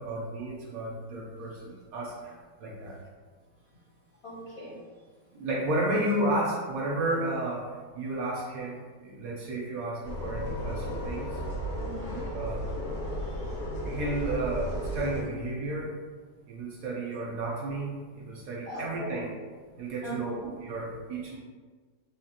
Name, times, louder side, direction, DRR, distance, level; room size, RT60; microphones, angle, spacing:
voice 1, 0.0-2.3 2.6-3.0 5.3-7.7 7.9-11.4 12.3-12.6 13.8-15.9 16.5-19.3 19.8-21.4, right 1 dB, 65° right, -3 dB, 1.0 m, -32 dB
voice 2, 4.2-4.8 11.8-12.2 13.2-13.6 18.6-19.2 19.7-20.2, right 1 dB, 55° left, -7 dB, 0.7 m, -41 dB
sound 1, 10.0-15.2, equal, 85° left, 1.4 m, -34 dB
3.7 x 2.3 x 2.8 m, 1.5 s
omnidirectional pair, 1.8 m